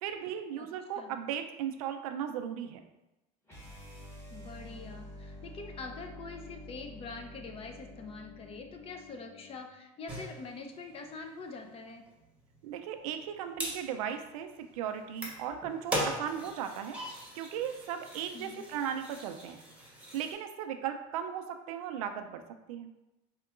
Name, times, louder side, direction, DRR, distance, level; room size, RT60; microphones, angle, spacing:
voice 1, 0.0-2.8 12.6-14.5 14.7-17.0 17.3-19.6 20.1-22.4 22.7-22.9, right 9 dB, 90° right, 7 dB, 0.4 m, -36 dB
sound 1, 3.4-9.6, left 1 dB, 15° left, 1.4 m, -48 dB
voice 2, 4.3-12.0 18.3-18.7, left 4 dB, 30° left, 4 dB, 0.5 m, -44 dB
sound 2, 10.1-20.3, right 1 dB, 5° right, 1.0 m, -40 dB
4.5 x 2.8 x 2.4 m, 0.97 s
supercardioid pair, 110°, 18 cm